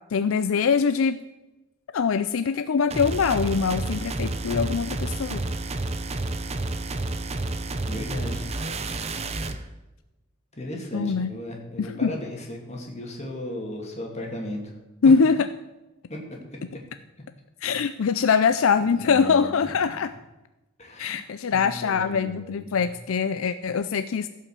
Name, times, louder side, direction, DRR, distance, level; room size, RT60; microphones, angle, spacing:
voice 1, 0.1-1.2 1.9-5.4 10.9-11.3 11.8-12.1 15.0-15.5 17.6-20.1 21.0-24.3, left 5 dB, 70° left, 11 dB, 0.4 m, -23 dB
sound 1, 2.9-9.6, right 2 dB, 30° right, 0.7 m, -30 dB
voice 2, 7.9-8.5 10.5-14.7 15.0-15.1 16.1-16.2 18.9-20.0 20.8-21.2 21.5-22.9, left 1 dB, 30° left, 0 dB, 2.5 m, -36 dB
15.5 x 5.7 x 7.4 m, 1.0 s
head